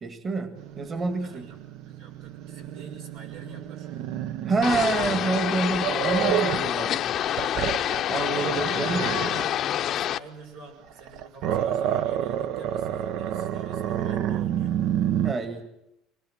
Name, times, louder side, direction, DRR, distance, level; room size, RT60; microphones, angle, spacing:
voice 1, 0.0-1.5 4.5-7.0 8.1-9.2 15.2-15.7, right 3 dB, 30° right, 8 dB, 1.8 m, -27 dB
Growling, 0.6-6.7 7.1-9.5 10.9-15.3, right 10 dB, 65° right, 0.8 m, -29 dB
voice 2, 1.2-1.6 1.8-4.1 6.6-7.0 7.8-8.7 9.3-14.8, right 4 dB, 85° right, 2 dB, 6.1 m, -47 dB
sound 1, 4.6-10.2, left 11 dB, 50° left, 0.8 m, -27 dB
24.0 x 19.5 x 7.8 m, 0.86 s
cardioid pair, 120°, 0 cm